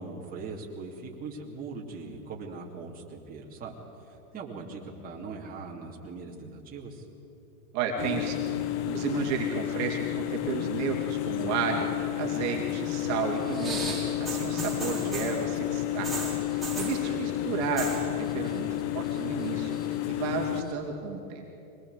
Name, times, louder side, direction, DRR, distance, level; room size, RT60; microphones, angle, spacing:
voice 1, 0.0-3.8 4.0-7.1 17.0-17.3, right 4 dB, 20° right, -3 dB, 3.0 m, -41 dB
voice 2, 7.7-8.4 8.8-11.9 12.2-13.8 14.2-18.7 18.9-19.8 20.1-21.4, right 6 dB, 35° right, 1 dB, 2.9 m, -32 dB
sound 1, 8.0-20.6, left 14 dB, 50° left, 1.1 m, -31 dB
sound 2, 13.5-15.4 16.0-17.0 17.6-18.0 18.3-18.8 19.1-19.9 20.7-20.8, right 2 dB, ahead, 4.1 m, -36 dB
24.5 x 20.0 x 8.3 m, 2.9 s
hypercardioid pair, 135°, 45 cm